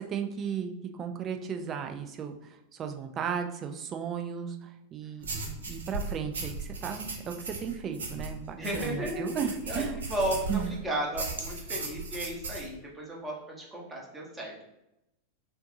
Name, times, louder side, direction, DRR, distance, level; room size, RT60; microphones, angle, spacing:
voice 1, 0.0-10.0 10.5-10.7, right 7 dB, 30° right, 5 dB, 0.5 m, -35 dB
sound 1, 5.2-10.8 11.1-12.7, right 3 dB, 65° right, 0.8 m, -37 dB
voice 2, 8.6-14.6, right 1 dB, 15° right, -2 dB, 1.3 m, -34 dB
5.8 x 2.7 x 2.7 m, 0.88 s
figure-of-eight pair, 90°, 0 cm